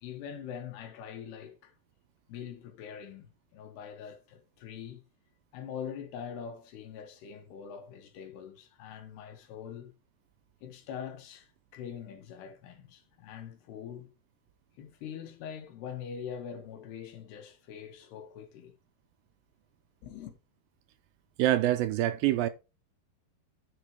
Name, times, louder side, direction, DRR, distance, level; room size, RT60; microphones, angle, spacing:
voice 1, 0.0-1.7 2.3-5.0 5.5-10.0 10.6-14.1 14.8-18.7 20.0-20.3, left 8 dB, 90° left, 3.6 m, -43 dB
voice 2, 21.4-22.5, right 13 dB, 80° right, 2.2 m, -25 dB
11.5 x 4.1 x 4.6 m
omnidirectional pair, 4.5 m